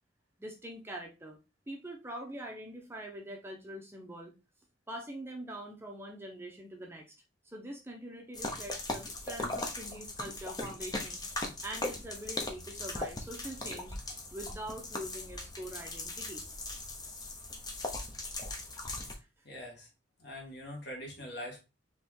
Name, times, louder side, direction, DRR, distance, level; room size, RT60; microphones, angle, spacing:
voice 1, 0.4-1.4 1.7-4.3 4.9-7.1 7.4-11.2 11.6-14.0 14.3-16.4 19.2-19.3, right 1 dB, 10° right, 1 dB, 0.7 m, -44 dB
sound 1, 8.3-19.1, left 2 dB, 20° left, 0.7 m, -39 dB
voice 2, 19.4-19.9 20.2-21.6, equal, 55° left, 0 dB, 1.7 m, -43 dB
4.4 x 3.2 x 3.6 m, 0.27 s
head